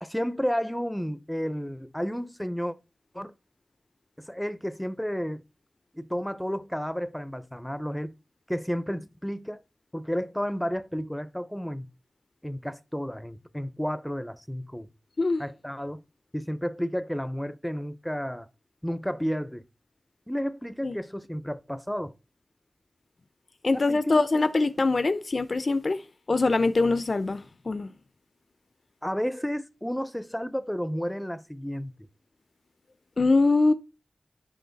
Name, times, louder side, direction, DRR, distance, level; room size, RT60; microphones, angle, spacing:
voice 1, 0.0-2.7 3.1-3.3 4.2-5.4 5.9-8.2 8.5-9.6 9.9-11.9 12.4-14.9 15.4-16.0 16.3-18.5 18.8-19.6 20.3-22.1 23.7-24.3 29.0-31.9, equal, 5° left, 0.6 m, -32 dB
voice 2, 23.6-26.0 26.3-27.9 33.2-33.7, left 3 dB, 60° left, 0.6 m, -23 dB
10.0 x 6.5 x 4.1 m
wide cardioid pair, 80°, 0 cm